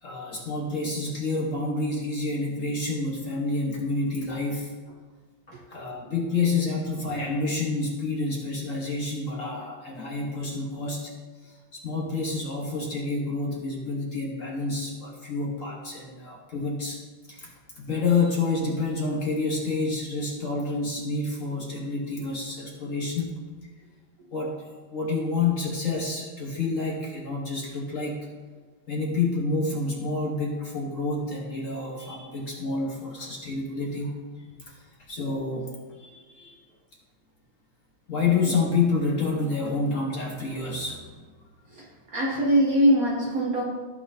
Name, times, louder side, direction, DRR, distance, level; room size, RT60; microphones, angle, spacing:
voice 1, 0.0-4.7 5.5-11.1 11.4-17.0 17.3-23.3 24.3-24.6 24.9-28.3 28.9-34.2 34.6-36.6 38.1-41.2, left 3 dB, 45° left, -2 dB, 1.4 m, -28 dB
voice 2, 42.1-43.6, equal, 55° right, -1 dB, 1.1 m, -22 dB
14.5 x 5.9 x 2.7 m, 1.4 s
omnidirectional pair, 2.3 m